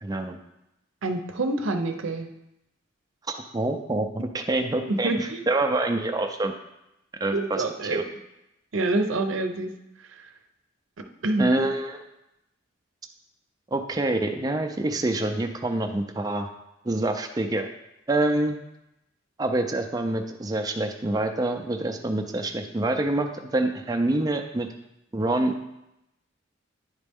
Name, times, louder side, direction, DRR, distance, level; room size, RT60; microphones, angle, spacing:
voice 1, 0.0-0.4 3.5-6.5 7.2-8.0 11.4-12.0 13.7-16.5 16.8-17.7 18.1-18.6 19.4-24.7 25.1-25.6, right 2 dB, 20° right, 4 dB, 0.4 m, -26 dB
voice 2, 1.0-2.3 4.9-5.5 7.3-8.0 8.7-9.7 11.2-11.5, right 2 dB, 90° right, 6 dB, 0.7 m, -26 dB
9.7 x 4.2 x 3.5 m, 0.88 s
head